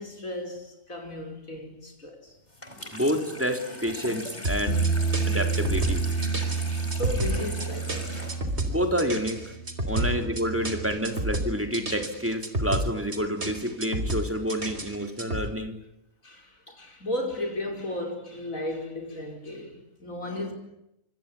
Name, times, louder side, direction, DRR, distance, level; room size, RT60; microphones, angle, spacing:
voice 1, 0.0-2.3 6.9-8.4 10.0-10.2 16.2-20.5, left 1 dB, 85° left, 5.7 m, -34 dB
Water tap faucet / Sink (filling or washing), 2.5-9.5, left 1 dB, 30° left, 4.7 m, -40 dB
voice 2, 2.9-4.8 5.3-6.0 8.7-9.5 9.8-15.8, equal, 10° right, 3.9 m, -28 dB
sound 1, 4.4-15.5, right 1 dB, 55° right, 3.9 m, -31 dB
Bass guitar, 4.7-10.9, right 4 dB, 50° left, 4.6 m, -30 dB
26.5 x 25.5 x 8.7 m
omnidirectional pair, 1.4 m